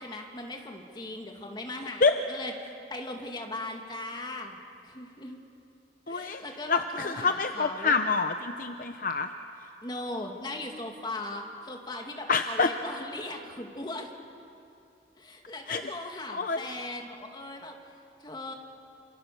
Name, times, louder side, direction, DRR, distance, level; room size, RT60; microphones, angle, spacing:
voice 1, 0.0-4.6 4.8-5.4 6.1-8.0 9.8-14.1 15.2-17.7 18.2-18.5, left 2 dB, 25° left, 2 dB, 2.6 m, -39 dB
voice 2, 6.1-6.4 6.7-9.3 12.3-12.7 15.7-15.8 16.3-16.6, left 4 dB, 50° left, 7 dB, 0.8 m, -26 dB
28.0 x 27.0 x 7.0 m, 2.6 s
head